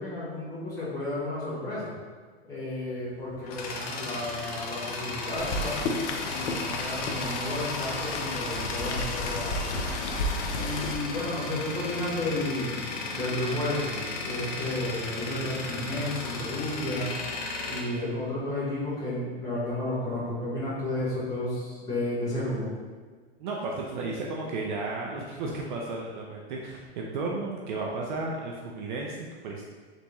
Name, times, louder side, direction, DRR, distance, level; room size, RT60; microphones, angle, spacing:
voice 1, 0.0-1.9 2.5-5.8 6.2-9.7 10.5-12.8 13.1-14.0 14.2-17.1 17.7-22.7, left 1 dB, 10° left, -9 dB, 1.1 m, -32 dB
Tools, 3.0-18.8, left 3 dB, 35° left, 0.5 m, -35 dB
Rain, 5.4-11.0, left 2 dB, 85° left, 0.7 m, -32 dB
voice 2, 23.4-29.6, right 3 dB, 45° right, -1 dB, 0.5 m, -33 dB
4.1 x 3.5 x 3.0 m, 1.5 s
supercardioid pair, 160°, 34 cm